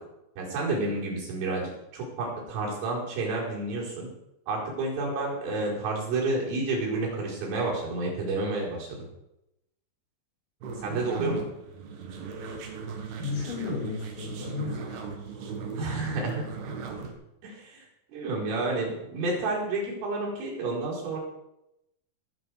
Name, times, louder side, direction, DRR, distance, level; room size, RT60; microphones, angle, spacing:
voice 1, 0.4-1.6 1.9-4.1 4.5-9.0 10.8-11.4 15.8-16.4 17.4-17.9 18.1-21.2, right 2 dB, 80° right, -5 dB, 7.2 m, -30 dB
sound 1, 10.6-17.1, right 5 dB, 65° right, 3.4 m, -38 dB
voice 2, 10.9-11.4 13.2-15.0 15.5-15.6, left 3 dB, 60° left, -3 dB, 6.4 m, -34 dB
19.5 x 8.4 x 4.9 m, 0.88 s
omnidirectional pair, 5.6 m